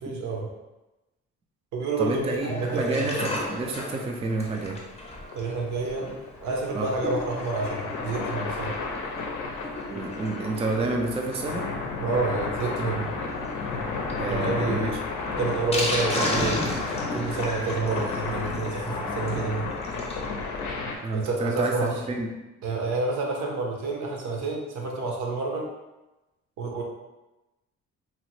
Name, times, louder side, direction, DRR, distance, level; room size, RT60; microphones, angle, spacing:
voice 1, 0.0-0.5 1.7-3.3 5.3-6.1 6.4-8.7 12.0-13.1 14.3-15.0 15.4-16.8 17.1-19.7 21.1-22.0 22.6-25.7 26.6-26.8, right 3 dB, 70° right, 0 dB, 0.7 m, -29 dB
voice 2, 2.0-4.8 6.7-6.9 9.9-11.6 14.2-15.0 21.0-21.7 22.1-22.3, right 3 dB, 20° right, 1 dB, 0.3 m, -29 dB
Sink (filling or washing), 2.3-20.3 20.6-20.7 20.9-21.0 21.4-21.5, left 1 dB, 20° left, 0.7 m, -35 dB
sound 1, 2.6-21.0, left 4 dB, 80° left, 0.5 m, -33 dB
2.9 x 2.1 x 3.0 m, 1.0 s
cardioid pair, 90°, 30 cm